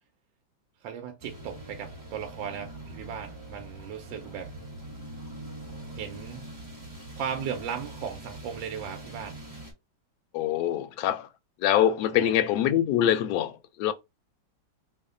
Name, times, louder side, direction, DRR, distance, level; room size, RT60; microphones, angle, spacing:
voice 1, 0.8-4.5 5.9-6.4 7.1-9.4 12.1-12.4, right 8 dB, 80° right, 1.3 m, -37 dB
sound 1, 1.2-9.7, right 2 dB, 15° right, 0.8 m, -43 dB
voice 2, 10.3-11.3 11.6-13.9, left 11 dB, 75° left, 0.9 m, -24 dB
3.3 x 2.1 x 3.6 m
omnidirectional pair, 2.1 m